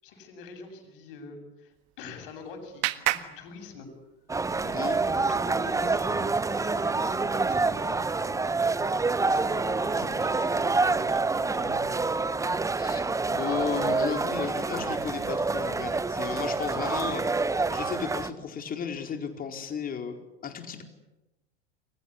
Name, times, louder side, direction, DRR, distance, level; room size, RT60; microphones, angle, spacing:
voice 1, 0.0-3.9 4.6-4.8 5.0-8.5 9.2-11.9, left 4 dB, 60° left, 6 dB, 7.9 m, -44 dB
Clapping, 1.7-4.3, right 19 dB, 50° right, 1.6 m, -34 dB
sound 1, 4.3-18.3, right 3 dB, 10° right, 1.2 m, -27 dB
voice 2, 12.7-17.4 17.7-20.2 20.4-20.8, left 7 dB, 30° left, 5 dB, 4.5 m, -34 dB
29.0 x 23.0 x 8.5 m, 0.99 s
figure-of-eight pair, 85°, 30 cm